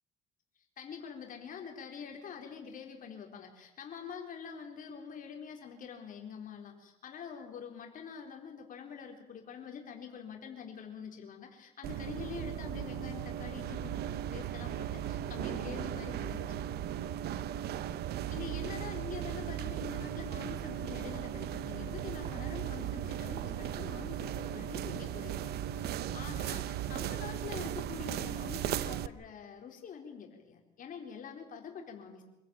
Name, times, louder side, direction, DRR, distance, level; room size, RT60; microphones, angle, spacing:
voice 1, 0.8-14.0 14.3-16.9 18.3-32.2, left 6 dB, 55° left, 2 dB, 4.2 m, -45 dB
sound 1, 11.8-29.1, right 11 dB, 70° right, 0.9 m, -37 dB
26.5 x 15.0 x 9.0 m, 0.95 s
cardioid pair, 110°, 17 cm